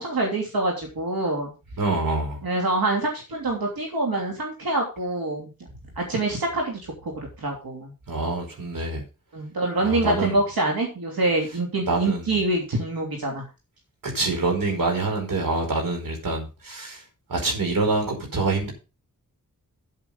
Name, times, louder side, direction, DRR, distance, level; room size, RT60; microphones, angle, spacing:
voice 1, 0.0-1.5 2.4-5.5 6.0-7.9 9.3-13.4, right 2 dB, 85° right, 0 dB, 3.1 m, -26 dB
voice 2, 1.8-2.4 8.1-9.0 9.8-10.4 11.8-12.3 14.0-17.0 17.3-18.7, right 3 dB, 70° right, 2 dB, 5.0 m, -26 dB
9.0 x 8.5 x 5.4 m, 0.30 s
wide cardioid pair, 95°, 35 cm